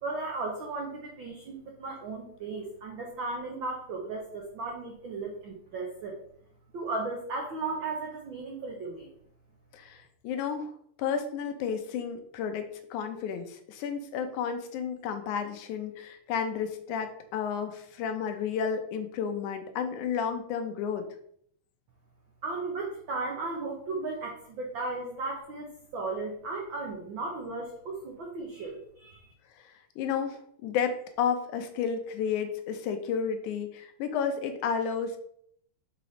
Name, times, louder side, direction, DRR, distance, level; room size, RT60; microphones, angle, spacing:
voice 1, 0.0-6.2 6.7-9.1 22.4-29.3, right 3 dB, 85° right, 0 dB, 1.0 m, -35 dB
voice 2, 9.7-10.7 11.0-21.1 29.7-35.2, left 7 dB, 80° left, 7 dB, 2.2 m, -32 dB
6.0 x 4.0 x 4.9 m, 0.67 s
omnidirectional pair, 3.6 m